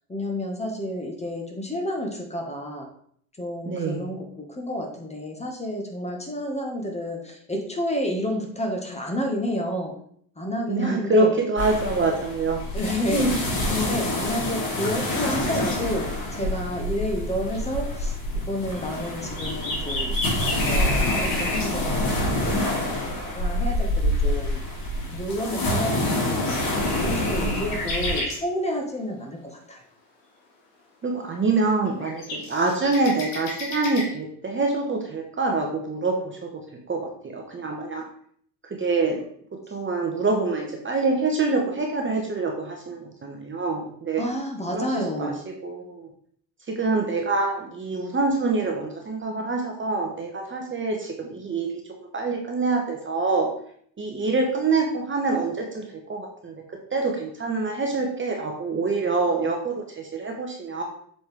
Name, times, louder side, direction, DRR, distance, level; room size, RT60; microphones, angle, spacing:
voice 1, 0.1-2.9 3.4-9.9 10.4-11.3 12.7-22.2 22.4-22.5 23.3-24.6 25.0-26.5 27.0-29.8 44.2-45.4, equal, 15° left, 1 dB, 1.7 m, -30 dB
voice 2, 3.6-4.1 10.7-12.6 13.1-13.3 27.4-27.7 31.0-36.5 36.9-38.0 38.8-39.2 39.7-44.2 44.7-45.3 45.6-46.1 46.7-51.7 52.1-53.5 54.0-56.6 56.9-60.8, right 3 dB, 25° right, 1 dB, 1.2 m, -25 dB
sound 1, 11.6-28.2, left 1 dB, 45° left, 2.9 m, -27 dB
sound 2, 15.1-15.8 18.7-21.7 22.3-22.4 22.7-22.8 23.2-23.3 23.6-23.7 25.8-28.4 31.7-34.0, left 2 dB, 65° left, 2.2 m, -32 dB
7.6 x 4.4 x 3.6 m, 0.63 s
figure-of-eight pair, 60°, 48 cm